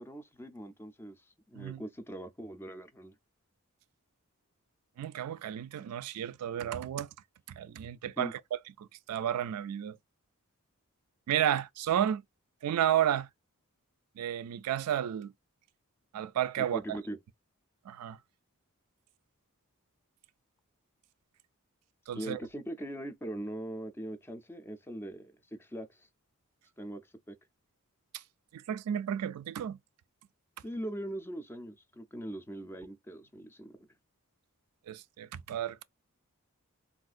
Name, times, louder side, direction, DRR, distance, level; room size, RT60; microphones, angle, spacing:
voice 1, 0.0-3.1 8.2-8.3 16.6-17.2 22.1-26.1 26.8-27.0 27.3-27.4 30.6-33.8, right 1 dB, 10° left, 0.4 m, -41 dB
voice 2, 5.0-7.1 7.5-8.3 9.1-10.0 11.3-12.2 12.6-13.3 14.2-15.3 16.1-16.8 17.9-18.2 22.1-22.4 28.5-29.8 34.9-35.8, right 10 dB, 80° right, 0.3 m, -32 dB
3.6 x 2.4 x 2.4 m
head